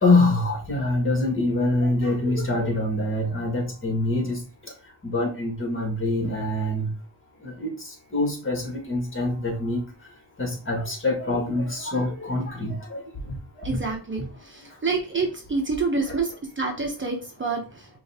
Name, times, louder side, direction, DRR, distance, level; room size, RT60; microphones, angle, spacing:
voice 1, 0.0-4.4 5.0-6.9 7.4-7.7 8.1-9.8 10.4-13.0 14.2-14.3 16.1-16.2, left 2 dB, 30° left, 1 dB, 1.7 m, -24 dB
voice 2, 13.6-17.9, right 4 dB, 30° right, 1 dB, 0.9 m, -28 dB
5.3 x 2.6 x 3.6 m, 0.35 s
wide cardioid pair, 115°, 38 cm